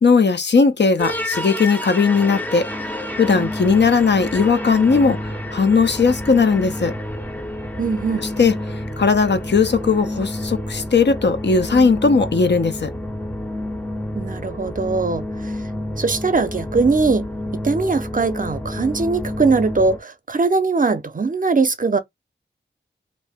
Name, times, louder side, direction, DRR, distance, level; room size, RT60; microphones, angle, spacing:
voice 1, 0.0-2.7 3.1-6.9 8.2-8.5 9.0-12.9, left 4 dB, 60° left, 0.6 m, -17 dB
sound 1, 1.0-20.0, left 1 dB, 10° left, 0.5 m, -29 dB
voice 2, 7.8-8.3 14.1-15.6 16.0-17.3 17.6-22.0, right 4 dB, 45° right, 0.6 m, -20 dB
2.6 x 2.1 x 3.3 m
wide cardioid pair, 55°, 20 cm